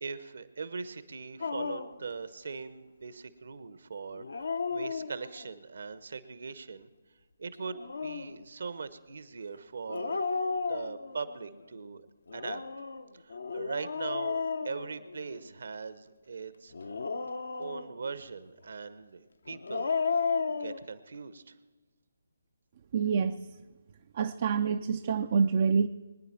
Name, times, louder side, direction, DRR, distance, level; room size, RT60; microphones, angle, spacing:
voice 1, 0.0-6.9 7.4-12.1 12.3-12.6 13.2-16.7 17.6-19.9 20.6-21.5, right 5 dB, 55° right, 13 dB, 1.0 m, -40 dB
Dog, 1.4-2.0 4.1-5.5 7.6-8.4 9.9-11.4 12.3-15.5 16.7-18.1 19.5-20.8, left 5 dB, 60° left, 0.9 m, -34 dB
voice 2, 22.9-23.3 24.2-25.9, right 6 dB, 40° right, 8 dB, 0.5 m, -26 dB
24.0 x 9.8 x 4.5 m, 1.3 s
figure-of-eight pair, 145°, 0 cm